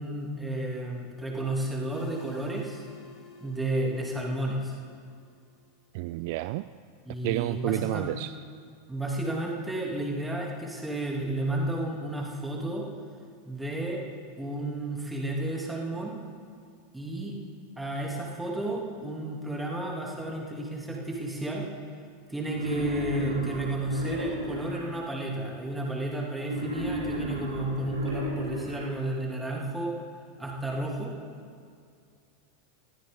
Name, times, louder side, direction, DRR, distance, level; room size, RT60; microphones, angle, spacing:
voice 1, 0.0-2.8 3.4-4.7 7.0-8.1 8.9-12.9 13.5-14.0 14.4-16.2 16.9-17.4 17.8-21.6 22.3-30.0 30.4-31.1, right 1 dB, 5° right, -2 dB, 2.8 m, -32 dB
sound 1, 1.9-5.6, left 3 dB, 30° left, 3.4 m, -51 dB
voice 2, 5.9-6.7 7.2-8.3, right 18 dB, 50° right, 13 dB, 0.3 m, -30 dB
Wild animals, 22.4-24.9 26.4-28.9, equal, 85° right, 3.0 m, -34 dB
20.5 x 15.0 x 3.8 m, 2.2 s
figure-of-eight pair, 85°, 0 cm